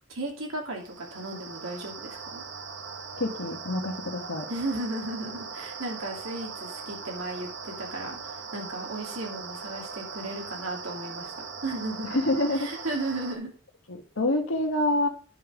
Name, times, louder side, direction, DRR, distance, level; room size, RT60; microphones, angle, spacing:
voice 1, 0.1-2.4 4.5-12.2 12.5-13.5, right 2 dB, 85° right, 1 dB, 2.8 m, -35 dB
sound 1, 0.8-13.4, right 5 dB, 60° right, 1.3 m, -40 dB
voice 2, 3.2-4.5 12.1-12.7 13.9-15.1, left 1 dB, 80° left, 2 dB, 1.4 m, -27 dB
9.8 x 5.4 x 5.0 m, 0.39 s
head